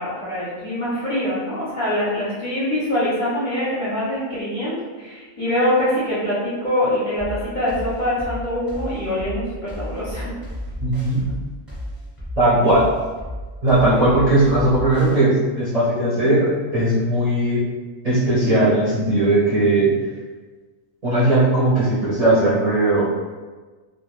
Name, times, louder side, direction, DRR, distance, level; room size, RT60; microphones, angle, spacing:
voice 1, 0.0-10.3, left 1 dB, 45° left, -10 dB, 0.7 m, -24 dB
sound 1, 7.2-15.2, left 1 dB, ahead, 0.7 m, -33 dB
voice 2, 10.8-11.3 12.4-12.9 13.6-17.6 18.0-19.9 21.0-23.0, right 1 dB, 40° right, -12 dB, 0.6 m, -18 dB
2.3 x 2.2 x 3.1 m, 1.3 s
omnidirectional pair, 1.4 m